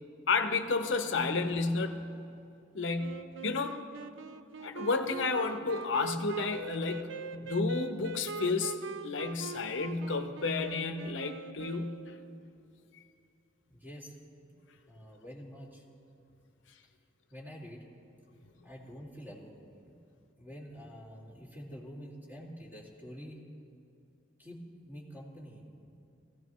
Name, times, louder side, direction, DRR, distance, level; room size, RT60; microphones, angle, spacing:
voice 1, 0.3-2.1 2.7-3.8 4.6-8.8 9.0-12.0, left 3 dB, 75° left, 7 dB, 0.8 m, -31 dB
Wind instrument woodwind instrument, 3.0-12.4, right 3 dB, 85° right, 0.5 m, -43 dB
voice 2, 13.7-14.2 14.4-14.6 14.9-15.8 17.3-17.9 18.6-19.9 20.4-23.4 24.4-25.9, equal, 10° right, -4 dB, 2.2 m, -47 dB
18.5 x 15.5 x 3.1 m, 2.7 s
head